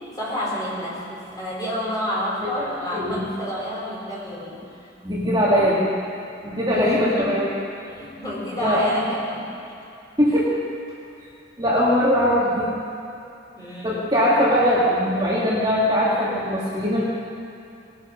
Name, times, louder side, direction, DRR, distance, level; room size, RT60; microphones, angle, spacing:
voice 1, 0.1-4.6 6.7-7.3 7.9-9.5 10.2-10.4 13.6-14.1, equal, 20° left, -6 dB, 4.2 m, -29 dB
voice 2, 2.4-3.2 5.0-5.9 6.4-7.4 8.6-8.8 10.2-10.5 11.6-12.7 13.8-17.1, equal, 20° right, -7 dB, 2.1 m, -21 dB
20.0 x 10.0 x 6.4 m, 2.7 s
head